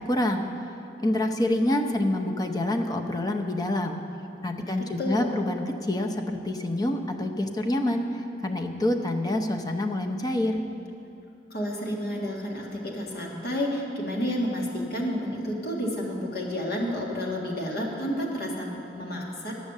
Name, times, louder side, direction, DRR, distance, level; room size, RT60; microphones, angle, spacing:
voice 1, 0.1-0.5 1.0-4.0 4.4-10.6, left 1 dB, 20° left, 4 dB, 0.7 m, -27 dB
voice 2, 4.6-5.4 11.5-19.5, equal, 60° left, -2 dB, 1.8 m, -30 dB
11.0 x 6.4 x 8.1 m, 2.7 s
head